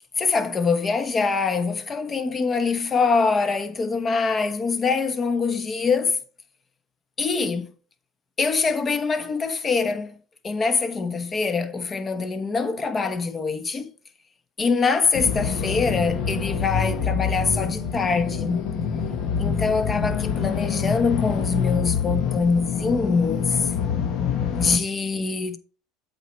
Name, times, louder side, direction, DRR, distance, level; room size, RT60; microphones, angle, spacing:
voice 1, 0.2-6.2 7.2-7.7 8.4-10.1 10.4-13.9 14.6-18.7 19.4-23.6 24.5-25.6, left 4 dB, 25° left, 1.0 m, -24 dB
sound 1, 15.1-24.8, left 6 dB, 55° left, 1.2 m, -26 dB
8.1 x 4.6 x 4.5 m
supercardioid pair, 95°, 0 cm